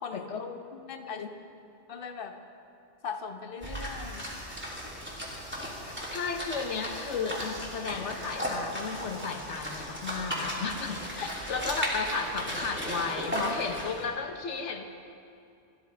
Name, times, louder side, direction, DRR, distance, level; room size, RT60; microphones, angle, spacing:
voice 1, 0.1-0.6 1.1-1.3 6.1-14.8, left 5 dB, 80° left, 5 dB, 1.3 m, -34 dB
voice 2, 0.7-1.2 1.9-2.4 3.0-4.3, left 6 dB, 50° left, 4 dB, 1.2 m, -39 dB
sound 1, 3.6-14.0, equal, 10° right, 3.0 m, -36 dB
sound 2, 3.6-12.6, equal, 85° right, 5.1 m, -52 dB
29.0 x 13.0 x 3.4 m, 2.5 s
omnidirectional pair, 1.2 m